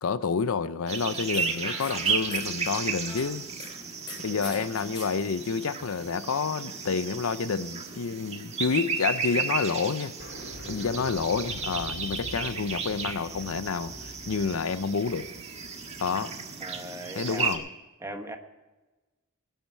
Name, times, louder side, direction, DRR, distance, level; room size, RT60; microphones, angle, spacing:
voice 1, 0.0-3.4 4.2-10.1 10.7-15.3 16.0-16.3 17.2-17.6, left 5 dB, 80° left, 0.6 m, -29 dB
sound 1, 0.9-17.6, right 5 dB, 30° right, 1.5 m, -34 dB
sound 2, 1.3-3.7 4.1-5.1, left 2 dB, 25° left, 3.6 m, -41 dB
sound 3, 3.4-4.6 5.0-5.1 6.6-7.0 7.3-8.7 9.0-9.1 9.3-9.4 9.7-9.8 10.2-16.9, left 1 dB, 60° left, 2.9 m, -46 dB
voice 2, 4.3-4.7 10.6-10.9 16.6-17.7 18.0-18.4, right 1 dB, 15° right, 1.2 m, -40 dB
19.5 x 9.2 x 5.5 m
head